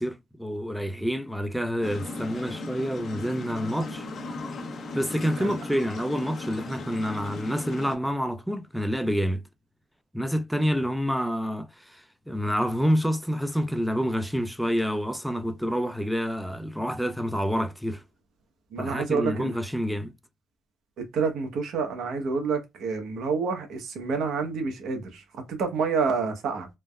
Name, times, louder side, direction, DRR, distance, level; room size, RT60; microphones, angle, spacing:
voice 1, 0.0-4.1 4.9-9.4 10.1-18.0 18.8-20.1, equal, ahead, 0.4 m, -28 dB
sound 1, 1.8-8.0, left 2 dB, 55° left, 0.6 m, -37 dB
voice 2, 18.7-19.5 21.0-26.7, right 5 dB, 75° right, 0.9 m, -28 dB
3.3 x 2.0 x 2.2 m
cardioid pair, 90°, 0 cm